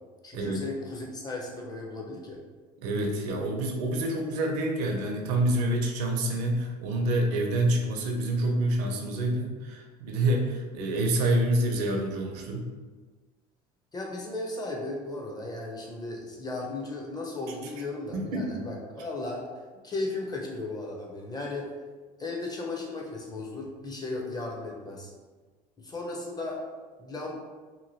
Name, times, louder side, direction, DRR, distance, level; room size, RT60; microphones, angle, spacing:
voice 1, 0.2-2.4 13.9-19.5 19.8-21.7 22.2-25.1 25.8-26.6 27.0-27.3, left 2 dB, 20° left, -1 dB, 0.8 m, -35 dB
voice 2, 2.8-12.6 18.1-18.7, right 1 dB, 75° right, 2 dB, 0.6 m, -27 dB
2.9 x 2.6 x 2.7 m, 1.4 s
hypercardioid pair, 75°, 21 cm